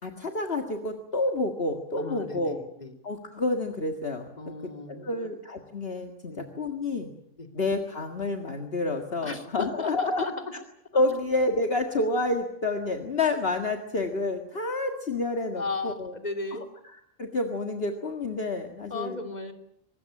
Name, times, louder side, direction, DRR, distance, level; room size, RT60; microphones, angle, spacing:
voice 1, 0.0-2.6 3.0-4.3 4.6-7.1 7.5-10.3 10.9-16.1 16.5-16.6 16.8-19.2, left 2 dB, 50° left, 4 dB, 2.1 m, -29 dB
voice 2, 2.0-2.9 4.4-5.3 6.3-6.5 7.4-7.5 9.2-10.3 15.6-16.6 18.9-19.5, left 3 dB, 35° left, 4 dB, 3.2 m, -35 dB
24.5 x 20.5 x 8.9 m, 0.71 s
omnidirectional pair, 1.3 m